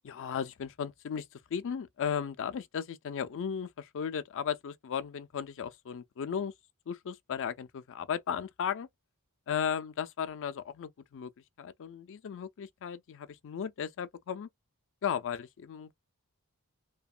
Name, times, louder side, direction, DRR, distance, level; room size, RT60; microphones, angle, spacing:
voice 1, 0.0-6.5 6.9-8.9 9.5-11.3 11.6-14.5 15.0-15.9, left 7 dB, 60° left, 0.4 m, -35 dB
2.8 x 2.3 x 2.4 m
head